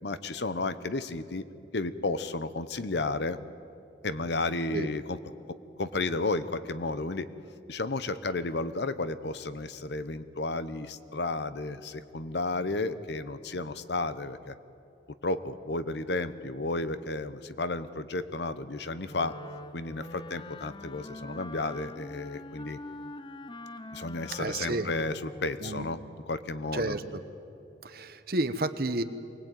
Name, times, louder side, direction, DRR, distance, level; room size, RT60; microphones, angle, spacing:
voice 1, 0.0-1.4 1.7-3.4 4.0-5.2 5.8-7.3 7.7-14.5 15.2-19.4 19.7-22.8 23.9-27.0, left 2 dB, 65° left, 13 dB, 0.9 m, -32 dB
Wind instrument woodwind instrument, 19.1-25.7, left 2 dB, 25° left, 0.7 m, -44 dB
voice 2, 24.4-24.9 25.6-25.8 26.7-27.2 27.8-29.0, right 2 dB, 55° right, 11 dB, 1.0 m, -31 dB
24.0 x 19.5 x 9.2 m, 2.6 s
head